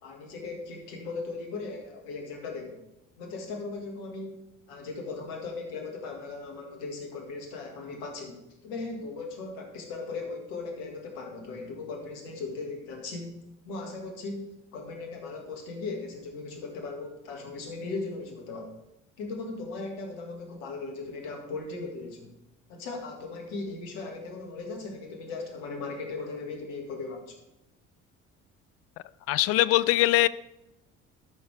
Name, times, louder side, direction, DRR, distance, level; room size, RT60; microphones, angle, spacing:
voice 1, 0.0-2.8 3.2-4.4 4.7-13.4 13.6-18.7 19.2-22.3 22.7-27.3, left 3 dB, 65° left, 2 dB, 2.1 m, -38 dB
voice 2, 29.3-30.3, left 16 dB, 40° left, 18 dB, 0.4 m, -22 dB
12.5 x 6.3 x 3.5 m, 0.89 s
figure-of-eight pair, 55°, 38 cm